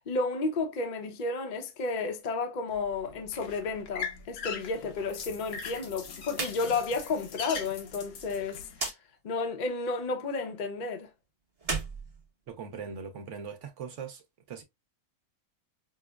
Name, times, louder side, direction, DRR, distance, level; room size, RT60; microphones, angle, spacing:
voice 1, 0.1-8.7 9.2-11.1, left 3 dB, 45° left, 0.6 m, -32 dB
sound 1, 2.7-8.9, left 6 dB, 75° left, 1.3 m, -41 dB
sound 2, 6.3-6.6 6.9-7.0 8.7-9.0 11.5-12.9, right 3 dB, 30° right, 0.8 m, -34 dB
voice 2, 12.5-14.2 14.5-14.6, right 6 dB, 60° right, 1.0 m, -40 dB
5.6 x 2.0 x 2.3 m
omnidirectional pair, 1.5 m